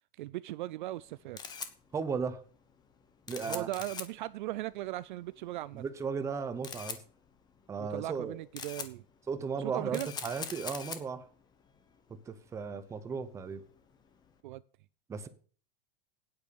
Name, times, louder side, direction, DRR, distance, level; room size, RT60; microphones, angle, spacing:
voice 1, 0.2-1.4 3.4-5.8 7.8-9.0 9.6-10.1 14.4-14.6, right 16 dB, 55° right, 0.4 m, -38 dB
Camera, 1.0-14.3, left 6 dB, 15° left, 1.0 m, -46 dB
voice 2, 1.9-2.4 3.3-3.7 5.7-7.0 7.7-8.4 9.3-11.3 12.3-13.6 15.1-15.3, right 5 dB, 10° right, 0.7 m, -35 dB
9.1 x 8.3 x 6.9 m
supercardioid pair, 165°, 29 cm